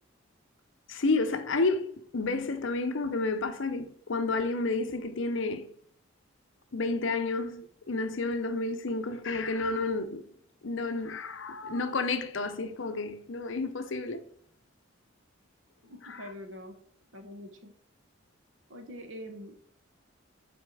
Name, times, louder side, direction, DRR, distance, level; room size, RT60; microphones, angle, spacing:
voice 1, 0.9-5.7 6.7-10.2 10.6-14.2 16.0-16.2, left 3 dB, 65° left, 0.7 m, -31 dB
voice 2, 15.8-16.8 17.1-17.7 18.7-19.6, equal, 70° right, 1.4 m, -44 dB
8.7 x 4.3 x 4.8 m
head